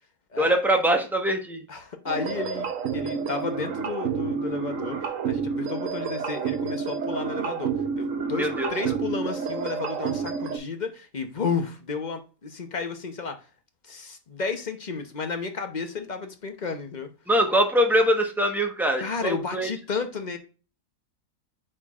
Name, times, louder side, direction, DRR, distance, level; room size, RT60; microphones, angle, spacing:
voice 1, 0.4-1.6 8.4-9.0 17.3-19.7, equal, ahead, 0.8 m, -23 dB
voice 2, 1.7-7.7 8.0-13.4 13.8-17.1 19.0-20.4, left 4 dB, 35° left, 0.7 m, -32 dB
sound 1, 2.1-10.6, right 6 dB, 55° right, 1.2 m, -29 dB
8.8 x 4.6 x 2.4 m
omnidirectional pair, 1.8 m